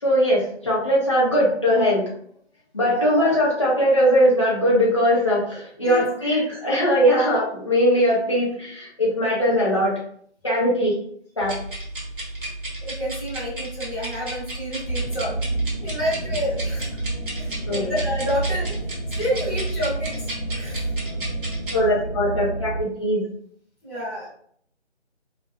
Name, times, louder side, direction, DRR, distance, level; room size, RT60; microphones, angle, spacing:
voice 1, 0.0-2.0 2.7-10.0 10.4-11.0 11.4-11.6 17.7-17.9 21.7-23.2, equal, 25° left, -5 dB, 0.5 m, -20 dB
sound 1, 11.4-21.8, right 1 dB, 50° right, 0.9 m, -34 dB
voice 2, 12.8-15.3 15.8-17.0 17.4-18.7 19.1-20.2 20.5-20.9 23.8-24.3, equal, 10° left, -14 dB, 1.0 m, -29 dB
sound 2, 14.9-22.8, right 2 dB, 85° left, 0.9 m, -29 dB
2.4 x 2.0 x 2.5 m, 0.63 s
figure-of-eight pair, 155°, 34 cm